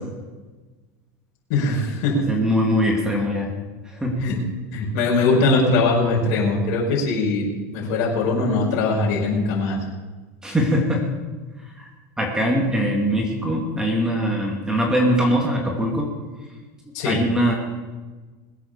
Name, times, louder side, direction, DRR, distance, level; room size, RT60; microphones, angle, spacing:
voice 1, 1.5-2.3 4.2-4.4 4.7-9.8 16.9-17.2, left 3 dB, 60° left, -3 dB, 5.0 m, -21 dB
voice 2, 2.1-3.5 3.8-4.2 10.4-11.1 11.6-11.9 12.2-16.1 17.0-17.5, equal, 10° right, 0 dB, 2.5 m, -22 dB
20.5 x 8.5 x 6.8 m, 1.3 s
supercardioid pair, 140°, 9 cm